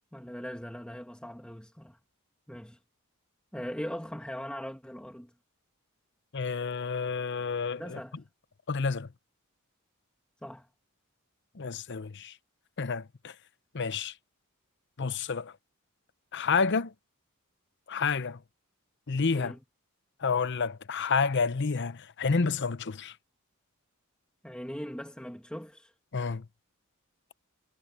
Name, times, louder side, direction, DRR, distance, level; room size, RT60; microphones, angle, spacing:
voice 1, 0.1-2.0 2.5-2.8 3.5-5.3 7.8-8.2 10.4-10.7 19.3-19.6 24.4-25.9, equal, 5° left, 1.9 m, -40 dB
voice 2, 6.3-8.0 8.7-9.1 11.6-12.3 12.8-13.3 13.7-14.1 15.0-15.5 16.3-16.9 17.9-18.4 19.1-19.5 20.2-23.1 26.1-26.5, left 5 dB, 55° left, 0.7 m, -29 dB
head